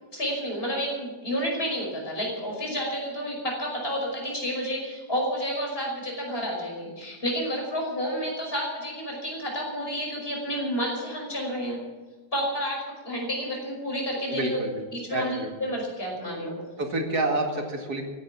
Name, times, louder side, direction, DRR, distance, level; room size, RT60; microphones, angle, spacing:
voice 1, 0.1-11.8 12.3-14.6 14.9-16.6, equal, 35° left, -1 dB, 5.8 m, -30 dB
voice 2, 14.3-15.5 16.8-18.0, right 2 dB, 70° right, 3 dB, 2.7 m, -29 dB
15.5 x 10.5 x 8.5 m, 1.3 s
omnidirectional pair, 1.8 m